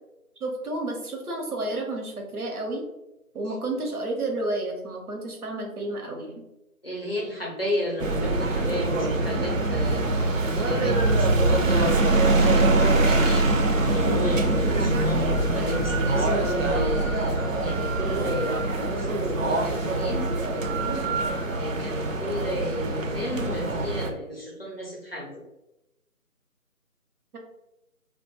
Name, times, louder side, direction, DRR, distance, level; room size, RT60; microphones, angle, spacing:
voice 1, 0.4-2.8 3.3-6.4, right 2 dB, 85° right, 2 dB, 0.8 m, -31 dB
voice 2, 6.8-13.5 13.9-21.1 21.5-25.4, equal, 45° left, -2 dB, 0.5 m, -33 dB
sound 1, 8.0-24.1, right 2 dB, 60° right, 0.5 m, -24 dB
2.3 x 2.2 x 2.7 m, 0.91 s
figure-of-eight pair, 165°, 44 cm